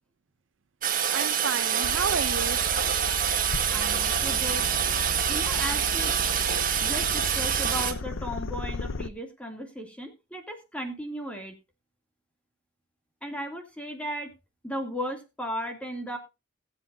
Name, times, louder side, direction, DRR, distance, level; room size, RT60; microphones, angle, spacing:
Toilet flush, 0.8-7.9, right 8 dB, 45° right, 1.7 m, -26 dB
voice 1, 1.1-2.6 3.0-4.4, right 5 dB, 70° right, 0.6 m, -34 dB
sound 1, 1.8-9.1, left 3 dB, 85° left, 0.7 m, -35 dB
voice 2, 3.7-4.7 5.3-6.1 6.8-11.5 13.2-14.3 14.6-16.2, equal, 5° left, 2.5 m, -36 dB
22.0 x 7.7 x 2.7 m
head